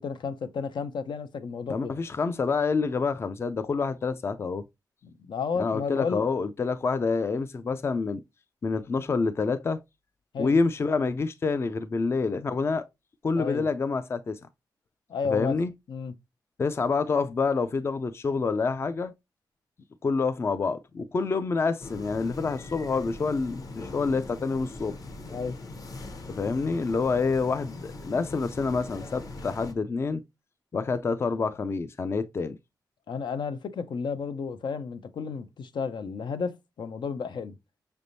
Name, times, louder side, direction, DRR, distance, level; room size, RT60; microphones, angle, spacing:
voice 1, 0.0-2.0 5.0-6.2 10.3-10.6 13.3-13.7 15.1-15.6 15.9-16.1 25.3-25.6 33.1-37.6, left 5 dB, 85° left, 0.7 m, -32 dB
voice 2, 1.7-4.6 5.6-8.2 8.6-9.8 10.4-12.9 13.2-14.4 15.3-15.7 16.6-19.1 20.0-25.0 26.3-30.2 30.7-32.6, left 4 dB, 35° left, 0.4 m, -27 dB
sound 1, 21.8-29.7, left 2 dB, 50° left, 1.0 m, -41 dB
5.9 x 3.4 x 2.6 m
wide cardioid pair, 165°, 8 cm